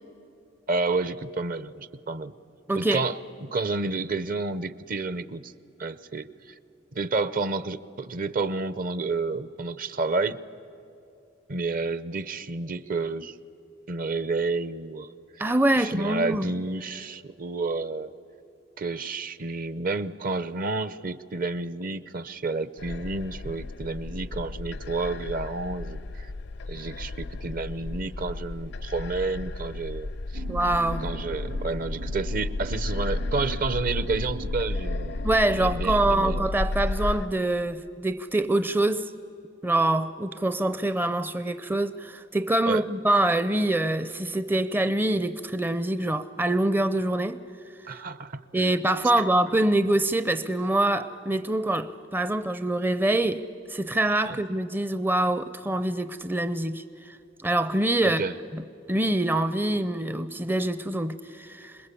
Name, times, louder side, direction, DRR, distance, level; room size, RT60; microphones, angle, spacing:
voice 1, 0.7-2.3 2.7-5.5 5.8-6.5 6.9-10.4 11.5-13.4 13.9-15.4 15.7-18.1 18.8-26.3 26.7-30.4 31.0-35.2 35.6-36.5 42.7-42.8 47.9-48.8 54.3-54.4 58.0-58.3, right 3 dB, 45° right, 0.7 m, -30 dB
voice 2, 2.7-3.0 15.4-16.5 30.5-31.1 35.2-39.1 39.6-47.4 48.5-57.2 57.4-58.2 58.5-58.6 58.9-61.8, right 1 dB, 10° right, 0.5 m, -25 dB
sound 1, 22.8-37.3, left 2 dB, 60° left, 0.5 m, -33 dB
sound 2, 30.3-36.5, right 5 dB, 80° right, 1.1 m, -43 dB
27.0 x 21.0 x 8.4 m
head